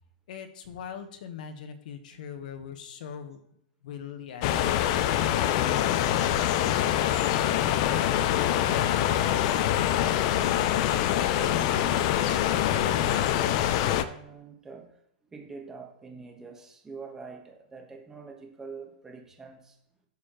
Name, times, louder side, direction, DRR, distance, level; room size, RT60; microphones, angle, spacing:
voice 1, 0.3-3.4 3.8-4.8 5.2-7.7, left 7 dB, 65° left, 8 dB, 1.2 m, -41 dB
sound 1, 4.4-14.0, left 11 dB, 40° left, 0.5 m, -25 dB
voice 2, 11.3-14.9 15.3-19.7, right 4 dB, 10° right, 2 dB, 1.2 m, -45 dB
11.0 x 6.8 x 3.0 m, 0.75 s
supercardioid pair, 155°, 5 cm